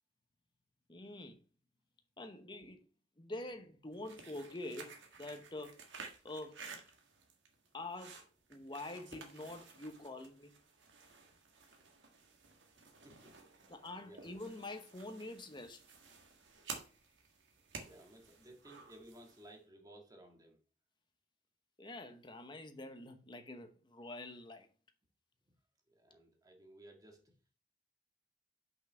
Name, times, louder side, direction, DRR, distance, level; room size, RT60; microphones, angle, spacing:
voice 1, 0.9-1.4 2.2-2.9 3.2-5.8 6.2-6.6 7.7-8.2 8.5-10.5 13.7-15.8 21.8-24.7, left 2 dB, 25° left, 1.0 m, -46 dB
sound 1, 3.9-19.5, right 4 dB, 85° right, 1.6 m, -54 dB
voice 2, 13.0-13.7 14.0-14.3 17.7-20.6 25.9-27.3, right 1 dB, 20° right, 1.6 m, -58 dB
6.0 x 5.6 x 5.6 m
head